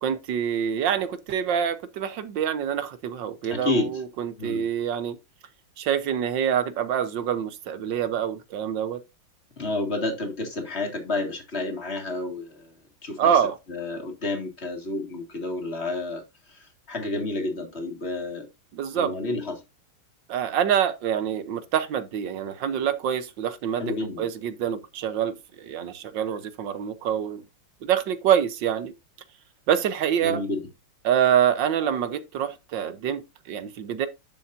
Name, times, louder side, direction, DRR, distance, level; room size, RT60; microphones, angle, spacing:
voice 1, 0.0-5.2 5.8-9.0 13.2-13.6 18.7-19.1 20.3-27.4 27.8-28.9 29.7-30.4 31.0-34.1, right 9 dB, 70° right, 1.5 m, -26 dB
voice 2, 3.5-4.0 4.4-4.6 9.6-12.7 13.0-13.3 13.7-16.2 16.5-16.6 16.9-18.5 18.9-19.6 23.8-24.3 30.2-30.7, left 2 dB, 30° left, 2.3 m, -30 dB
10.5 x 7.0 x 2.6 m
omnidirectional pair, 2.2 m